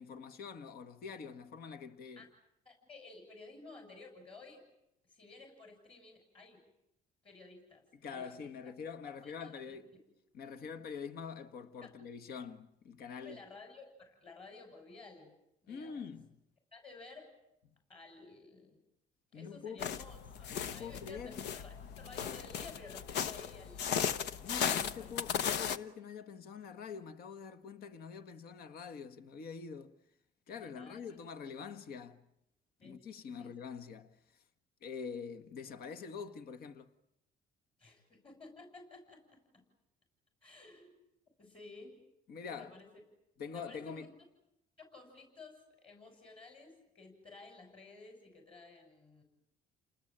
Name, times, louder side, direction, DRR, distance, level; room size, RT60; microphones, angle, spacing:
voice 1, 0.0-2.3 8.0-9.9 10.3-13.4 15.7-16.3 19.3-19.9 20.6-21.4 24.4-29.9 30.5-32.2 32.8-34.2 34.8-36.9 42.3-42.7 43.4-44.1, left 6 dB, 65° left, 1.6 m, -45 dB
voice 2, 2.7-4.6 5.0-6.6 7.2-7.8 8.1-8.5 9.1-9.8 13.2-15.3 15.6-16.1 16.7-17.3 17.9-18.8 19.3-24.1 24.7-25.1 30.6-31.2 32.8-33.0 33.4-33.5 37.8-39.6 40.4-40.9 41.4-42.0 42.4-42.9 43.4-44.1 44.8-49.2, left 3 dB, 35° left, 7.1 m, -54 dB
sound 1, 19.8-25.8, left 8 dB, 80° left, 1.0 m, -36 dB
29.5 x 20.0 x 8.9 m
cardioid pair, 110°, 17 cm